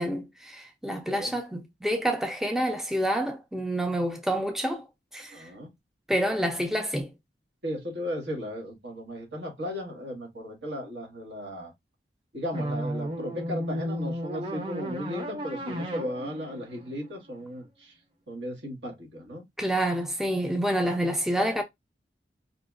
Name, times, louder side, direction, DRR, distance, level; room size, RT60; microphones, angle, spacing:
voice 1, 0.0-4.8 5.1-5.5 6.1-7.1 19.6-21.6, right 1 dB, ahead, 0.4 m, -28 dB
voice 2, 0.9-1.3 5.3-5.7 7.6-11.7 12.3-18.0 18.3-19.4, equal, 75° right, 1.6 m, -36 dB
sound 1, 12.5-17.7, equal, 25° right, 0.7 m, -34 dB
4.8 x 2.8 x 2.4 m
head